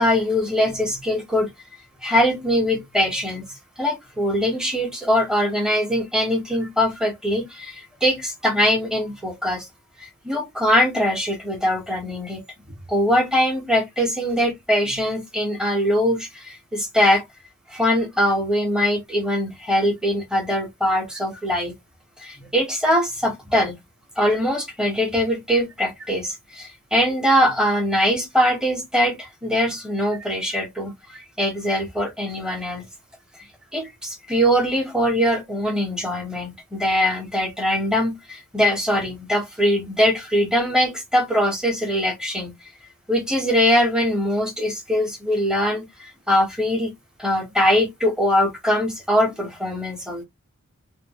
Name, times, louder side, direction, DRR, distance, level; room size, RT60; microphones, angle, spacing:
voice 1, 0.0-1.5 2.0-9.7 10.0-12.4 12.9-17.2 17.7-21.7 22.2-23.8 24.2-32.8 33.7-42.5 43.1-46.9 47.2-50.2, equal, 5° right, 0.9 m, -22 dB
2.5 x 2.5 x 2.9 m
head